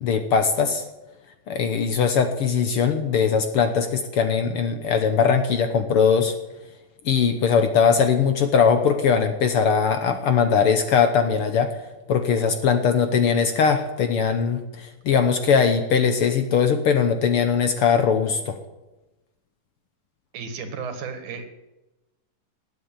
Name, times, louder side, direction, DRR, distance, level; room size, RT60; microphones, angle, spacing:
voice 1, 0.0-0.8 1.5-6.3 7.0-11.7 12.1-18.6, left 6 dB, 65° left, 8 dB, 1.5 m, -20 dB
voice 2, 20.3-21.5, right 5 dB, 85° right, 7 dB, 3.3 m, -33 dB
18.5 x 8.4 x 8.9 m, 1.0 s
omnidirectional pair, 3.4 m